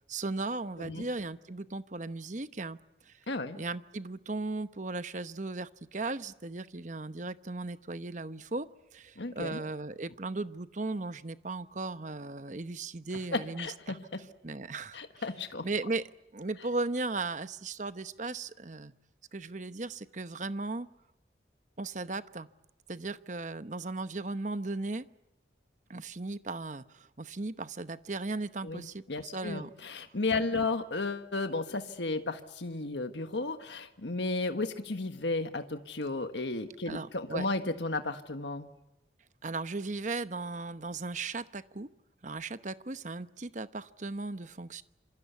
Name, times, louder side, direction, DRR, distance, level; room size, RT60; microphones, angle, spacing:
voice 1, 0.1-2.8 3.1-3.2 3.5-14.0 14.4-15.0 15.6-18.9 19.3-20.9 21.8-22.5 22.9-25.0 25.9-29.7 36.9-37.5 39.4-41.9 42.2-44.8, right 3 dB, 40° right, 12 dB, 0.9 m, -37 dB
voice 2, 3.3-3.6 9.2-9.6 13.3-14.2 14.9-15.7 28.6-38.7, left 3 dB, 75° left, 7 dB, 1.5 m, -34 dB
27.0 x 26.0 x 8.2 m, 0.88 s
head